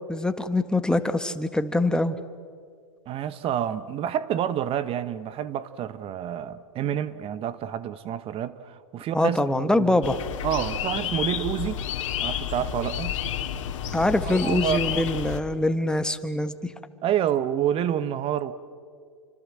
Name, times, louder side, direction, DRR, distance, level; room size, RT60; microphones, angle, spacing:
voice 1, 0.1-2.2 9.1-10.2 13.9-16.7, left 1 dB, 5° left, 1.3 m, -24 dB
voice 2, 3.1-10.0 10.4-11.8 12.2-13.2 14.2-15.0 17.0-18.5, right 10 dB, 35° right, 1.1 m, -28 dB
sound 1, 10.0-15.4, left 10 dB, 65° left, 2.4 m, -30 dB
29.0 x 25.0 x 7.6 m
hypercardioid pair, 105°, 17 cm